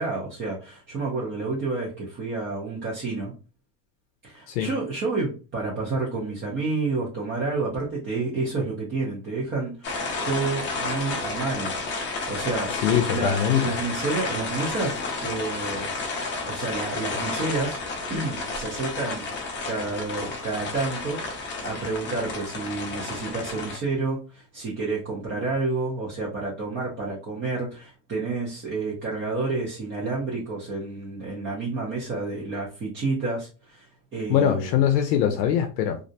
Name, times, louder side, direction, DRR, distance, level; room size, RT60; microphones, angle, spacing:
voice 1, 0.0-3.3 4.2-10.0 10.2-11.7 12.3-12.8 13.1-16.2 16.4-17.8 18.1-34.7, right 3 dB, 25° right, 0.7 m, -30 dB
sound 1, 9.8-23.8, left 3 dB, 25° left, 0.5 m, -31 dB
voice 2, 12.7-13.7 34.3-36.0, left 9 dB, 80° left, 0.6 m, -22 dB
2.5 x 2.0 x 2.7 m
supercardioid pair, 125°, 49 cm